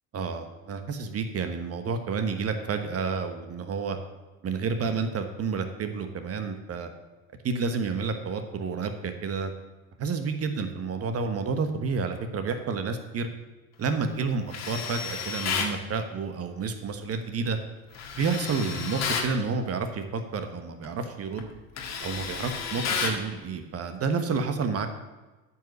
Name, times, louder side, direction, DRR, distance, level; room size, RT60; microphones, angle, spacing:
voice 1, 0.1-4.0 4.4-6.9 7.4-9.5 10.0-13.3 13.8-17.6 18.2-21.5 22.0-24.9, right 4 dB, 35° right, 7 dB, 1.3 m, -30 dB
Tools, 14.5-15.8 17.9-19.3 20.8-21.0 21.4-23.2, left 5 dB, 40° left, 1.6 m, -31 dB
9.0 x 5.8 x 6.8 m, 1.2 s
hypercardioid pair, 70°, 43 cm